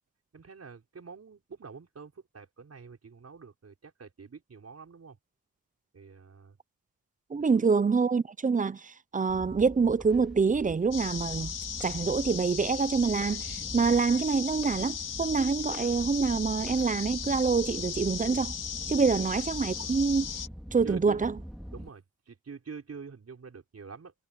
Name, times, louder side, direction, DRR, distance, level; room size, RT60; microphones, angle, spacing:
voice 1, 0.3-5.2 5.9-6.6 7.5-7.7 19.1-19.2 20.8-21.3 21.7-24.1, right 5 dB, 45° right, 5.9 m, -46 dB
voice 2, 7.3-11.5 11.8-18.5 18.9-20.3 20.7-21.3, right 5 dB, 25° right, 0.5 m, -26 dB
sound 1, 9.3-21.9, equal, ahead, 3.3 m, -43 dB
sound 2, 10.9-20.5, left 8 dB, 65° left, 1.2 m, -37 dB
wide cardioid pair, 150°, 34 cm